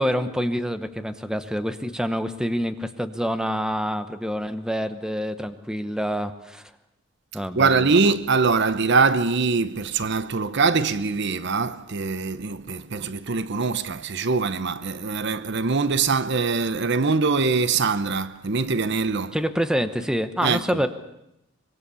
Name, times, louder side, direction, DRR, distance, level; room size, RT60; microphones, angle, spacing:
voice 1, 0.0-6.7 7.3-8.0 19.3-20.9, equal, 5° right, 1.0 m, -27 dB
voice 2, 7.6-19.4 20.4-20.6, right 4 dB, 55° right, 0.8 m, -23 dB
24.5 x 22.5 x 7.0 m
head